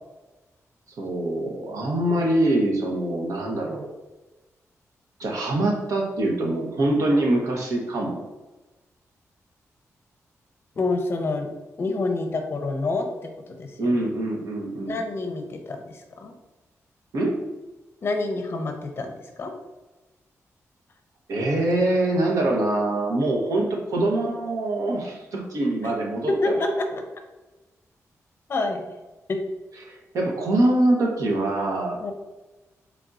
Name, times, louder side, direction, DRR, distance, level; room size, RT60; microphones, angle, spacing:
voice 1, 1.0-3.9 5.2-8.2 13.8-15.0 17.1-17.3 21.3-26.5 29.8-32.1, right 1 dB, 80° right, 0 dB, 0.9 m, -24 dB
voice 2, 10.8-11.5 11.8-13.1 13.6-14.0 14.9-16.3 18.0-19.1 19.4-19.5 26.3-26.9 28.5-28.8 29.3-29.4 32.0-32.1, left 2 dB, 45° left, 4 dB, 0.6 m, -27 dB
3.9 x 3.5 x 2.4 m, 1.1 s
wide cardioid pair, 150°, 6 cm